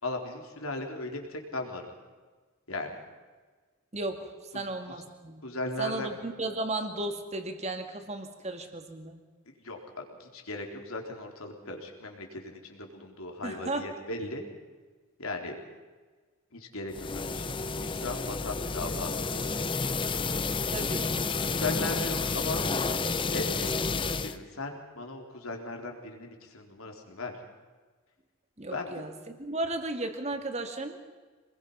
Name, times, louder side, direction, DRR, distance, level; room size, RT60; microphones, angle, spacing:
voice 1, 0.0-1.8 2.7-2.9 4.5-4.6 5.4-6.1 9.6-14.4 15.2-15.6 16.5-19.5 19.8-19.9 21.5-22.6 23.3-27.3 28.7-29.0, left 2 dB, 80° left, 3 dB, 3.7 m, -37 dB
voice 2, 3.9-5.4 5.8-9.2 13.4-13.9 20.7-21.3 28.6-31.0, right 2 dB, 30° right, 6 dB, 2.1 m, -35 dB
sound 1, 16.9-24.4, left 4 dB, 20° left, 0.7 m, -30 dB
27.0 x 21.0 x 5.7 m, 1.4 s
head